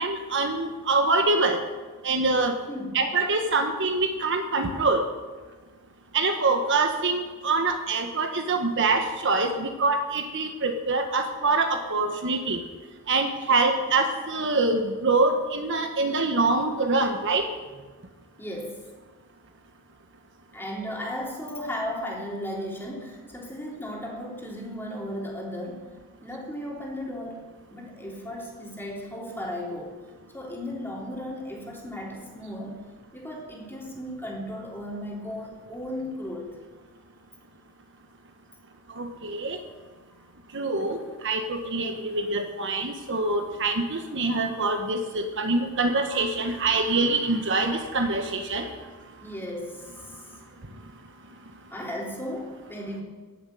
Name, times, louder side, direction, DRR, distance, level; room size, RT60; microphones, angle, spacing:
voice 1, 0.0-1.6 2.0-2.5 2.9-5.1 6.1-12.6 13.1-17.5 38.9-39.6 40.5-48.7, right 3 dB, 55° right, 5 dB, 1.3 m, -25 dB
voice 2, 2.7-3.1 18.4-18.9 20.5-26.0 26.2-27.4 27.7-30.1 30.3-32.9 33.1-36.5 49.2-50.5 51.7-53.0, left 1 dB, 10° left, -2 dB, 3.3 m, -35 dB
15.5 x 7.5 x 9.3 m, 1.3 s
head